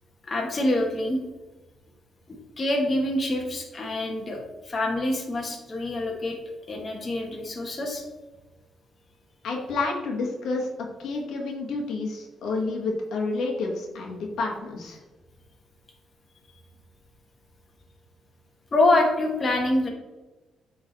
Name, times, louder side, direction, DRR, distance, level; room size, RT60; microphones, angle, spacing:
voice 1, 0.3-1.2 2.3-4.4 4.6-6.4 6.7-8.0 18.7-19.9, left 2 dB, 35° left, 1 dB, 1.5 m, -25 dB
voice 2, 9.4-10.7 11.0-15.0, left 3 dB, 80° left, 0 dB, 1.4 m, -29 dB
9.1 x 3.9 x 4.0 m, 1.2 s
cardioid pair, 90°, 0 cm